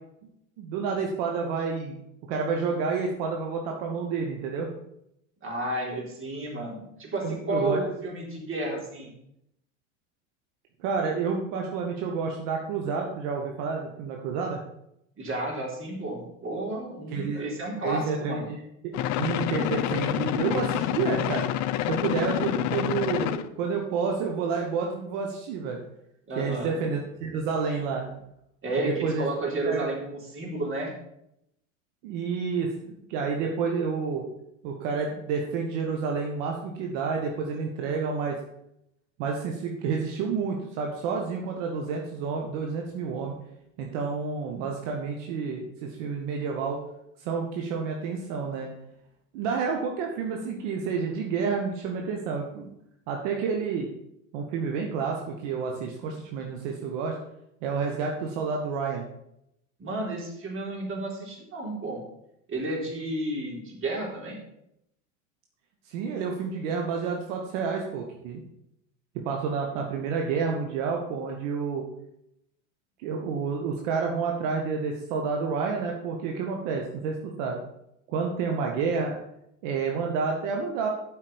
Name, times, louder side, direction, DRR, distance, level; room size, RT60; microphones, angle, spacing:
voice 1, 0.6-2.0 2.3-4.7 7.2-7.8 10.8-14.6 17.1-17.4 17.8-18.6 18.8-21.4 21.9-25.8 26.4-28.1 28.8-29.2 29.6-29.9 32.0-34.3 34.6-38.4 39.2-43.3 43.8-46.8 47.2-48.7 49.3-52.7 53.1-53.9 54.3-57.2 57.6-59.0 65.8-68.4 69.2-71.9 73.0-77.6 78.1-79.2 79.6-80.9, right 5 dB, 65° right, 1 dB, 1.6 m, -29 dB
voice 2, 5.4-9.1 15.2-18.5 26.3-26.8 28.6-30.9 59.8-62.0 62.5-64.4, right 2 dB, 30° right, -1 dB, 3.9 m, -32 dB
sound 1, 18.9-23.5, left 12 dB, 45° left, 0.7 m, -28 dB
8.1 x 5.6 x 7.0 m, 0.78 s
hypercardioid pair, 95°, 39 cm